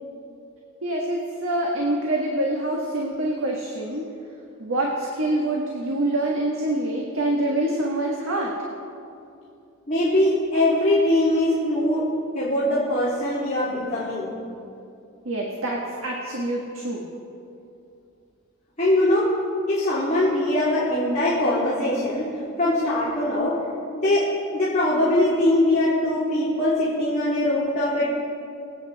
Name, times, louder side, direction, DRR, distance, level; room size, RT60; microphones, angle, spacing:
voice 1, 0.8-4.0 4.6-8.5 15.2-17.0, right 1 dB, 70° right, -1 dB, 1.6 m, -25 dB
voice 2, 9.9-12.1 12.3-14.3 18.8-19.3 19.7-23.6 23.9-28.1, left 1 dB, 35° left, -11 dB, 3.0 m, -22 dB
24.0 x 8.8 x 4.2 m, 2.6 s
head